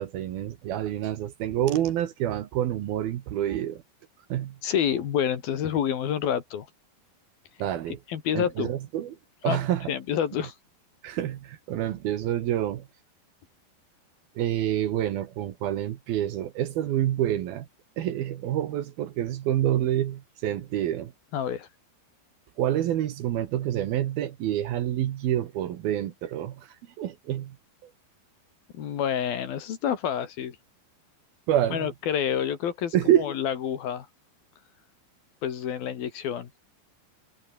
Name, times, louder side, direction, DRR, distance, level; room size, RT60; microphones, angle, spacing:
voice 1, 0.0-3.8 4.3-4.6 7.6-8.0 8.3-9.2 9.4-9.9 11.0-12.9 14.4-17.7 18.0-21.1 22.6-27.6 27.8-27.9 31.5-31.9 32.9-33.3, right 12 dB, 65° right, 2.9 m, -27 dB
voice 2, 4.6-6.7 8.1-8.7 9.5-9.6 9.9-10.5 21.3-21.7 28.8-30.6 31.7-34.1 35.4-36.5, left 9 dB, 60° left, 3.7 m, -28 dB
omnidirectional pair, 5.1 m